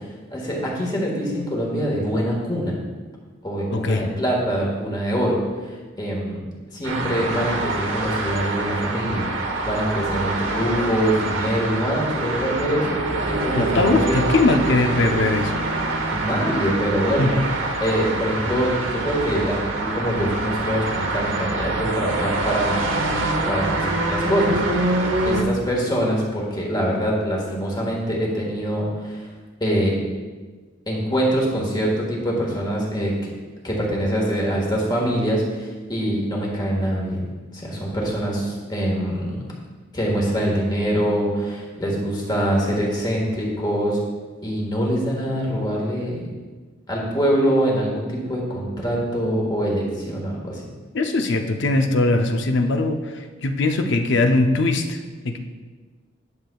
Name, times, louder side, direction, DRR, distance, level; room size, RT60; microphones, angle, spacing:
voice 1, 0.0-2.8 3.4-6.4 6.7-13.0 13.3-14.2 16.1-17.3 17.8-22.9 23.5-24.9 25.2-29.3 29.6-30.0 30.9-33.3 33.6-39.5 39.9-44.0 44.4-46.3 46.9-50.6, equal, 20° left, -2 dB, 1.6 m, -24 dB
voice 2, 3.7-4.0 13.5-15.6 17.2-17.5 50.9-55.0 55.2-55.4, left 2 dB, 60° left, 5 dB, 0.6 m, -20 dB
sound 1, 6.8-25.4, right 2 dB, 70° right, 0.9 m, -25 dB
11.0 x 6.8 x 2.3 m, 1.4 s
head